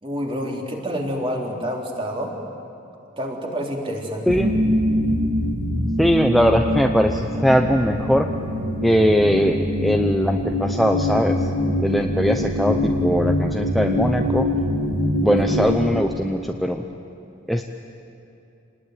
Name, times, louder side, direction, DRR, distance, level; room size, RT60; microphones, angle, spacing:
voice 1, 0.0-2.3 3.2-4.4 15.3-15.4, equal, 25° right, -1 dB, 3.7 m, -28 dB
sound 1, 4.3-15.8, left 1 dB, 45° right, 2.8 m, -23 dB
voice 2, 6.0-8.3 8.8-11.5 11.8-14.5 15.2-16.9 17.5-17.6, equal, ahead, 3 dB, 0.8 m, -20 dB
28.0 x 20.0 x 9.5 m, 2.7 s
head